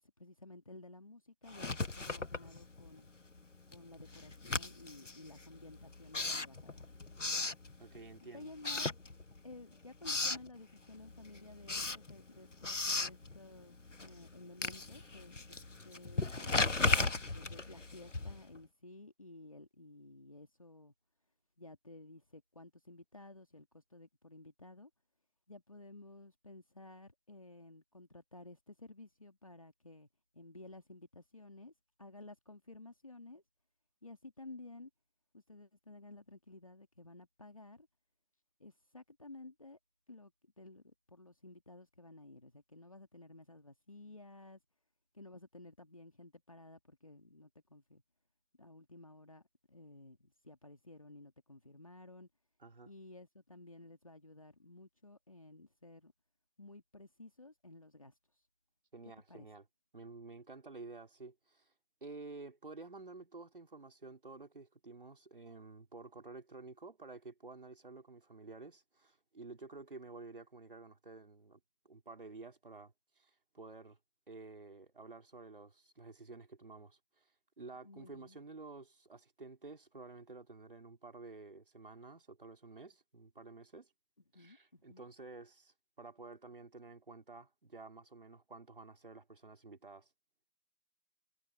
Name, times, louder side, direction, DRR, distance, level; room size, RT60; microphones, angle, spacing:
voice 1, 0.0-3.1 3.7-6.9 8.2-8.9 9.4-15.6 15.8-16.7 17.3-20.9 21.6-24.9 25.5-30.1 30.3-31.7 32.0-33.4 34.0-34.9 35.3-37.9 38.6-39.8 40.1-44.6 45.1-48.0 48.6-52.3 52.9-56.1 56.6-58.1 59.3-59.5 77.8-78.4 84.3-85.0, left 2 dB, 20° left, 2.1 m, -54 dB
Writing, 1.5-3.1 3.4-8.2 8.6-9.6 9.8-10.5 10.9-18.6, left 3 dB, 50° left, 1.3 m, -37 dB
voice 2, 7.8-8.5 52.6-52.9 58.9-59.6 59.9-61.7 62.0-74.0 74.3-77.3 77.6-83.9 84.3-90.1, right 3 dB, 35° right, 4.3 m, -51 dB
figure-of-eight pair, 175°, 48 cm